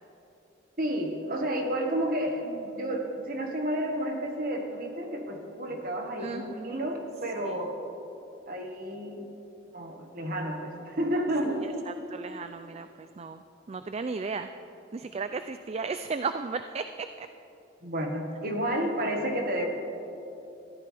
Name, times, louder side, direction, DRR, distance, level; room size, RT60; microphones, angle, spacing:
voice 1, 0.8-7.8 8.5-9.3 9.7-11.6 17.8-19.7, right 1 dB, 45° right, 2 dB, 1.6 m, -31 dB
voice 2, 6.2-6.8 7.4-7.7 11.4-13.4 13.7-14.5 14.9-17.3, right 4 dB, 30° right, 9 dB, 0.3 m, -35 dB
21.5 x 14.5 x 3.5 m, 3.0 s
head